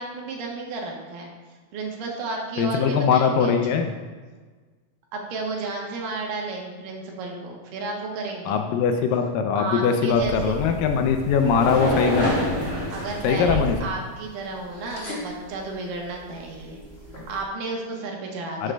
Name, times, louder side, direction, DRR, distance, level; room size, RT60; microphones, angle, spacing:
voice 1, 0.0-1.3 1.7-3.5 5.1-8.6 9.5-10.6 12.9-16.8 17.3-18.7, right 3 dB, 75° right, 0 dB, 2.5 m, -32 dB
voice 2, 2.6-3.9 8.5-12.4 13.2-13.8 18.6-18.7, left 6 dB, 80° left, 6 dB, 2.1 m, -21 dB
sound 1, 10.1-13.8, equal, 30° right, 2.1 m, -28 dB
sound 2, 11.8-17.4, equal, 65° left, 0.6 m, -42 dB
12.5 x 6.1 x 2.2 m, 1.4 s
omnidirectional pair, 4.2 m